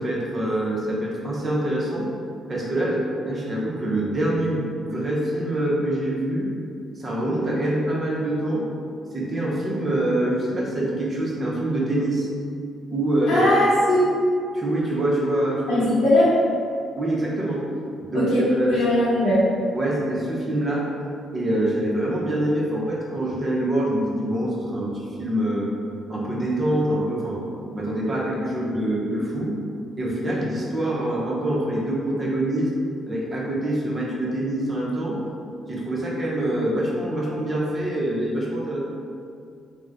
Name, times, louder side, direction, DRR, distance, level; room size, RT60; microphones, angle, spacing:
voice 1, 0.0-2.1 2.5-6.5 7.0-8.7 9.1-12.3 12.9-13.5 14.5-15.8 17.0-17.6 18.1-18.8 19.7-20.9 21.3-25.7 26.1-27.4 27.7-29.5 30.0-32.7 33.1-35.2 35.7-38.8, right 1 dB, 30° right, -4 dB, 0.7 m, -25 dB
voice 2, 13.3-14.1 15.7-16.3 18.1-19.4, left 1 dB, 85° left, -9 dB, 0.7 m, -19 dB
2.9 x 2.1 x 3.6 m, 2.4 s
cardioid pair, 90°, 0 cm